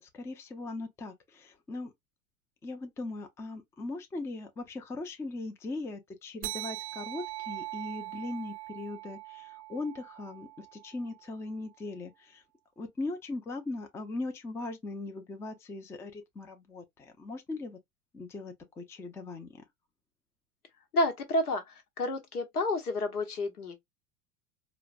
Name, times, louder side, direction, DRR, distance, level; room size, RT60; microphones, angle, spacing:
voice 1, 0.0-1.9 2.6-12.4 12.8-17.8 18.1-19.6, left 2 dB, 5° left, 0.4 m, -39 dB
sound 1, 6.4-11.3, right 18 dB, 55° right, 0.6 m, -41 dB
voice 2, 20.9-23.8, left 1 dB, 80° left, 1.0 m, -30 dB
3.8 x 2.1 x 2.4 m
figure-of-eight pair, 85°, 44 cm